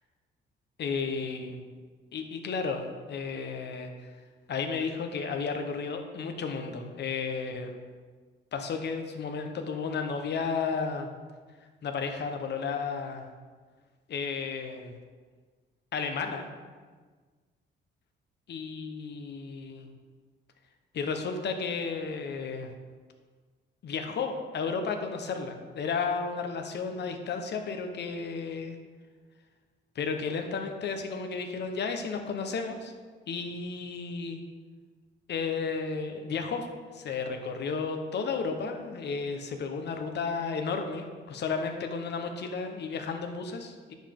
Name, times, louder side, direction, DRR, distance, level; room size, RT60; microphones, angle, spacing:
voice 1, 0.8-1.5 2.1-2.8 3.1-4.1 4.5-7.7 8.5-11.1 11.8-13.3 14.1-14.9 15.9-16.5 18.5-19.9 20.9-22.7 23.8-28.8 29.9-32.9 33.3-34.4 35.3-36.7 36.9-43.9, left 5 dB, 60° left, 5 dB, 1.1 m, -33 dB
9.8 x 7.3 x 3.8 m, 1.5 s
cardioid pair, 90°, 20 cm